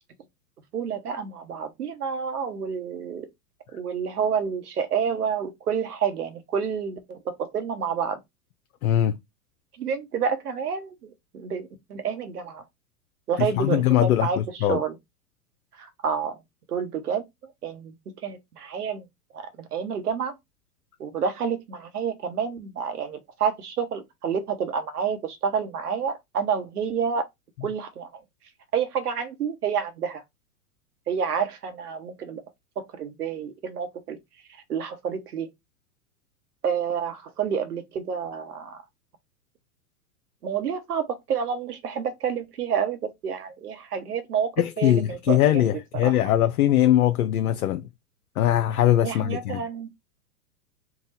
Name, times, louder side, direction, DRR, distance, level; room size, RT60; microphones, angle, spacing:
voice 1, 0.7-3.3 3.7-8.2 9.8-11.1 11.3-12.6 13.3-15.0 15.8-16.4 16.7-17.9 18.2-19.1 19.3-20.3 21.0-27.3 27.6-28.1 28.7-30.2 31.1-32.4 32.8-34.2 34.7-35.5 36.6-38.8 40.4-45.6 46.0-46.1 49.0-49.9, right 7 dB, 80° right, 1.0 m, -29 dB
voice 2, 8.8-9.2 13.4-14.8 44.6-47.8 48.4-49.6, left 12 dB, 70° left, 0.6 m, -21 dB
3.8 x 2.3 x 4.1 m
hypercardioid pair, 105°, 45 cm